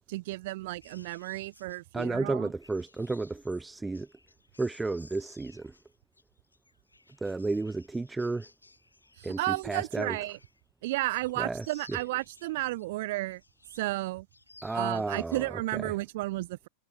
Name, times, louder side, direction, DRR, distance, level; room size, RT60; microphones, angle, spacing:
voice 1, 0.1-2.5 9.2-10.4 10.8-13.4 13.8-14.3 14.7-16.7, right 19 dB, 50° right, 0.7 m, -33 dB
sound 1, 0.8-10.6 11.0-12.9 13.3-14.0 14.3-15.5 15.8-16.1, left 3 dB, 80° left, 1.2 m, -58 dB
voice 2, 1.9-4.1 4.6-5.7 7.2-8.5 9.2-10.2 11.4-12.0 14.6-15.9, right 3 dB, 10° right, 0.4 m, -32 dB
figure-of-eight pair, 90°, 0 cm